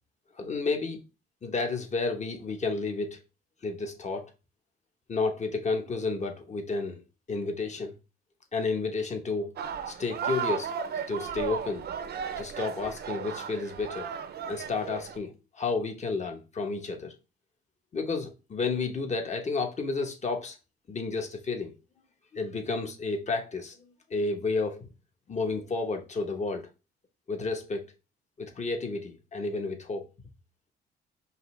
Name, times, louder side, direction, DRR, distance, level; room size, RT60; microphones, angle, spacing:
voice 1, 0.4-1.0 1.4-3.2 3.6-4.3 5.1-7.0 7.3-7.9 8.5-9.5 9.9-10.7 11.1-11.9 12.4-14.1 14.5-17.1 17.9-20.6 20.9-21.7 22.3-24.9 25.3-26.7 27.3-27.9 28.4-30.1, left 3 dB, 35° left, 1.1 m, -31 dB
sound 1, 9.6-15.2, right 7 dB, 55° right, 0.6 m, -35 dB
5.4 x 2.7 x 3.2 m
cardioid pair, 90°, 20 cm